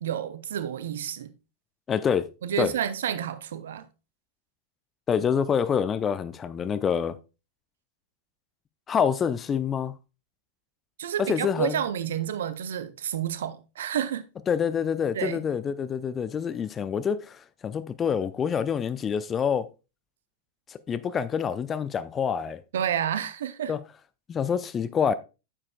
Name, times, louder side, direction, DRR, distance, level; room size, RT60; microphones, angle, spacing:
voice 1, 0.0-1.3 2.4-3.9 11.0-14.3 15.1-15.4 22.7-23.7, right 9 dB, 60° right, 0.7 m, -30 dB
voice 2, 1.9-2.3 2.6-2.7 5.1-7.2 8.9-9.9 11.2-11.8 14.5-19.7 20.7-22.6 23.7-23.8 24.3-25.1, left 7 dB, 25° left, 0.5 m, -26 dB
9.5 x 7.3 x 2.3 m
figure-of-eight pair, 90°, 0 cm